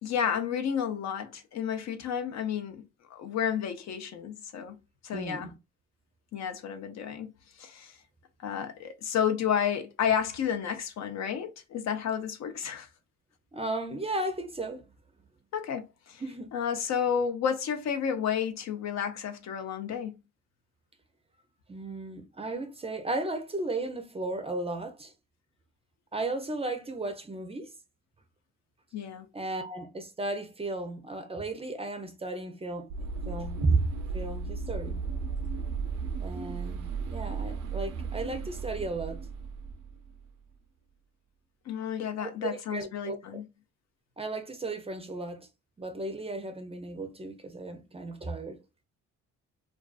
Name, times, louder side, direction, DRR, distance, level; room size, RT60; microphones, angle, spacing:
voice 1, 0.0-2.8 3.1-4.8 5.0-5.5 6.3-8.0 8.4-12.9 15.5-16.2 16.5-20.2 28.9-29.3 41.7-43.4, left 8 dB, 60° left, 0.6 m, -31 dB
voice 2, 5.1-5.6 13.5-14.8 16.2-16.5 21.7-25.1 26.1-27.7 29.3-33.9 34.1-35.0 36.2-39.3 42.2-43.4 44.2-45.5 45.8-48.6, right 2 dB, 20° right, 0.5 m, -34 dB
sound 1, 32.9-40.3, right 4 dB, 80° right, 0.5 m, -35 dB
2.4 x 2.3 x 2.3 m
cardioid pair, 90°, 30 cm